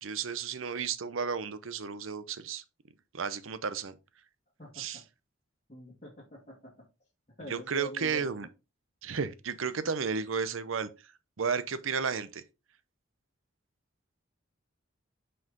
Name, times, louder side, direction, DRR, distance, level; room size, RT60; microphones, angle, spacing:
voice 1, 0.0-2.6 3.1-3.9 4.8-5.0 7.5-8.5 9.0-10.9 11.4-12.4, right 6 dB, 85° right, 0.7 m, -33 dB
voice 2, 5.7-6.7 7.4-8.3, left 1 dB, 35° left, 1.9 m, -45 dB
6.1 x 4.8 x 3.8 m
head